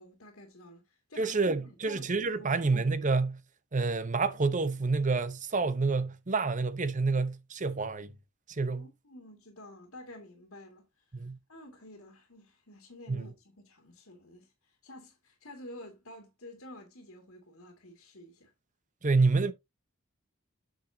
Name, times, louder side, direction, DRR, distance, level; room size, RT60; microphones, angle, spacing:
voice 1, 0.0-2.6 8.7-11.2 11.5-18.5, left 1 dB, 70° left, 2.3 m, -51 dB
voice 2, 1.2-3.4 3.7-8.1 8.5-8.8 11.1-11.4 13.1-13.2 19.0-19.5, right 3 dB, 35° right, 0.8 m, -28 dB
8.8 x 6.5 x 2.7 m
head